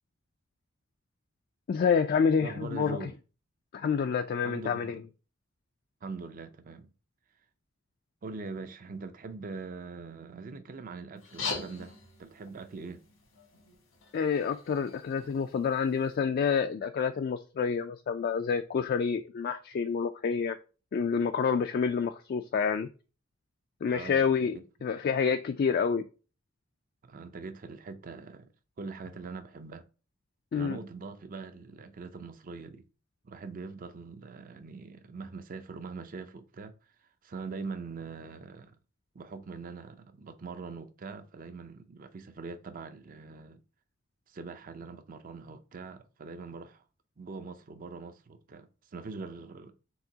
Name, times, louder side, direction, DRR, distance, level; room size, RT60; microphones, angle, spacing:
voice 1, 1.7-3.1 3.7-5.0 14.1-20.6 20.9-22.9 23.8-26.0 30.5-30.8, left 6 dB, 50° left, 0.3 m, -28 dB
voice 2, 2.4-3.1 4.4-4.9 6.0-6.9 8.2-13.0 23.9-24.2 27.0-28.5 28.8-29.8 30.5-32.8 33.2-36.7 37.2-38.7 39.1-43.6 44.3-46.8 47.2-49.7, right 4 dB, 45° right, 0.5 m, -42 dB
sound 1, 11.2-16.2, left 4 dB, 90° left, 1.5 m, -42 dB
4.6 x 3.6 x 2.7 m
head